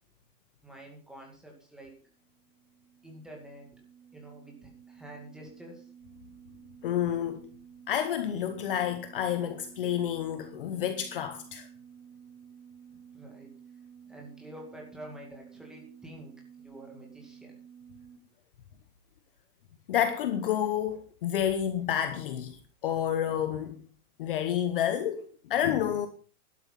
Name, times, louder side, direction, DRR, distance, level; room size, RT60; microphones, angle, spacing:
voice 1, 0.6-1.9 3.0-3.8 4.1-5.9 12.9-13.5 14.0-16.3 16.6-17.6, right 1 dB, ahead, 2.2 m, -48 dB
sound 1, 2.0-18.2, right 7 dB, 35° right, 6.1 m, -53 dB
voice 2, 6.8-7.4 7.9-11.7 19.9-23.8 24.2-26.1, left 10 dB, 35° left, 1.0 m, -29 dB
12.0 x 11.5 x 5.5 m
supercardioid pair, 175°, 45 cm